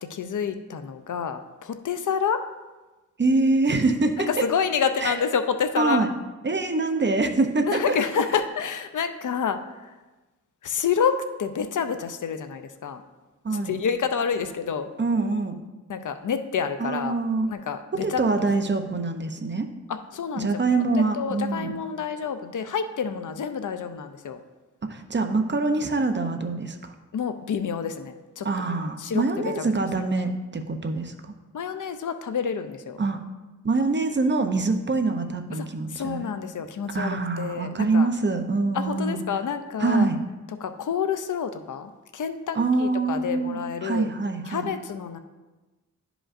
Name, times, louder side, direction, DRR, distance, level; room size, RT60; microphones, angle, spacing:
voice 1, 0.1-2.4 4.3-6.0 7.7-9.9 10.6-13.0 13.5-14.9 15.9-17.1 17.5-18.2 19.9-20.6 20.9-24.4 27.1-28.5 29.0-29.7 30.2-30.3 31.5-33.0 35.5-38.1 38.7-40.1 40.6-44.1 44.5-45.2, left 6 dB, 75° left, 9 dB, 0.5 m, -28 dB
voice 2, 3.2-4.4 5.0-5.2 5.8-6.1 6.4-8.0 13.4-13.8 15.0-15.6 16.8-17.5 17.9-19.7 20.4-21.8 24.9-26.9 28.4-31.3 33.0-33.2 33.6-36.3 36.9-39.2 39.8-40.2 42.5-44.6, right 3 dB, 35° right, 6 dB, 0.6 m, -25 dB
11.0 x 5.0 x 2.5 m, 1.2 s
wide cardioid pair, 95°, 31 cm